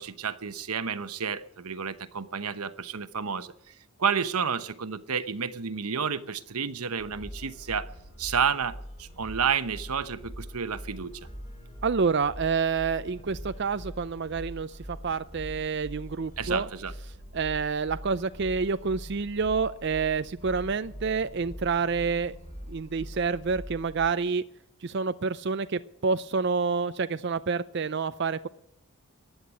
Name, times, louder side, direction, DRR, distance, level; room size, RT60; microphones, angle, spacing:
voice 1, 0.0-3.5 4.0-7.9 8.2-11.3 16.4-16.9, right 6 dB, 90° right, 1.0 m, -30 dB
sound 1, 7.0-24.1, equal, 30° left, 4.5 m, -43 dB
voice 2, 11.8-16.7 17.3-22.4 22.7-24.4 24.8-28.5, right 5 dB, 50° right, 0.5 m, -28 dB
15.0 x 10.5 x 8.2 m
head